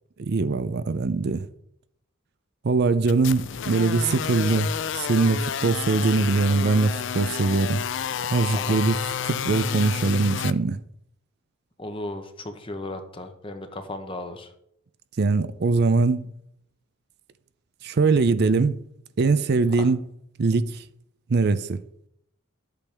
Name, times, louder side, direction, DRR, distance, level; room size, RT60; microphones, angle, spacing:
voice 1, 0.2-1.5 2.6-4.7 4.9-7.8 8.3-9.0 9.2-10.8 15.2-16.3 17.8-18.8 19.2-20.0 20.4-20.8 21.3-21.8, right 3 dB, 50° right, 0.5 m, -22 dB
sound 1, 3.1-10.5, left 8 dB, 60° left, 0.4 m, -30 dB
voice 2, 11.8-14.5 19.8-19.9, left 2 dB, 25° left, 1.0 m, -35 dB
11.5 x 8.3 x 3.5 m
head